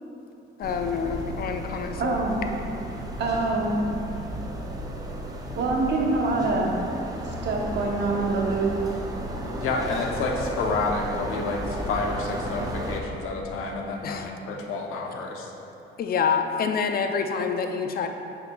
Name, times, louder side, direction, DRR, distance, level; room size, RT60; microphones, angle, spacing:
voice 1, 0.6-2.2 6.4-6.5 14.0-14.3 16.0-18.1, left 6 dB, 45° left, 5 dB, 0.4 m, -27 dB
sound 1, 0.6-13.0, equal, 15° right, 0.6 m, -34 dB
voice 2, 2.0-2.4 3.2-3.8 5.5-6.8 7.2-8.7, right 3 dB, 55° right, -1 dB, 0.9 m, -25 dB
voice 3, 9.6-15.5, left 3 dB, 85° left, 1 dB, 0.8 m, -29 dB
6.8 x 6.6 x 2.3 m, 3.0 s
cardioid pair, 125°, 21 cm